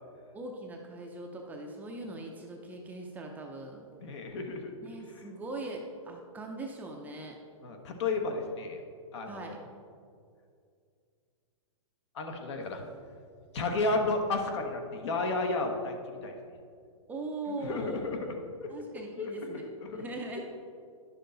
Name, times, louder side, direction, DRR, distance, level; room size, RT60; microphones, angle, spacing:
voice 1, 0.3-3.9 4.8-7.4 9.3-9.6 17.1-18.0 18.7-19.6 19.9-20.4, right 2 dB, 10° right, 1 dB, 0.5 m, -40 dB
voice 2, 4.0-4.7 7.6-8.8 9.1-9.6 12.1-12.8 13.5-16.3 17.6-18.7 19.1-20.0, left 3 dB, 55° left, 4 dB, 1.3 m, -32 dB
10.5 x 6.6 x 3.9 m, 2.3 s
hypercardioid pair, 150°, 17 cm